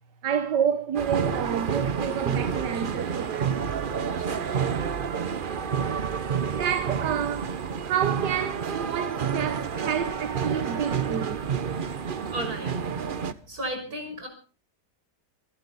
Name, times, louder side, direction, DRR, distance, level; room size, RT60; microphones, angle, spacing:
voice 1, 0.2-3.6 6.5-7.5 7.8-11.4, right 8 dB, 75° right, 1.7 m, -29 dB
sound 1, 0.9-13.3, right 7 dB, 40° right, 0.7 m, -29 dB
voice 2, 4.1-4.8 12.3-12.8 13.1-14.3, right 1 dB, 60° right, 6.5 m, -36 dB
25.0 x 12.5 x 4.1 m
omnidirectional pair, 1.8 m